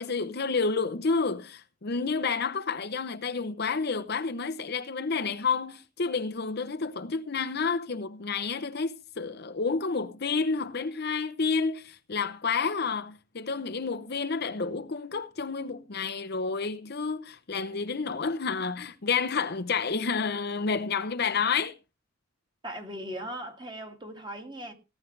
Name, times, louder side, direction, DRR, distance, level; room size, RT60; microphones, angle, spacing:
voice 1, 0.0-21.7, left 5 dB, 50° left, 0.8 m, -30 dB
voice 2, 22.6-24.7, equal, 20° right, 2.2 m, -38 dB
18.0 x 9.3 x 3.3 m
head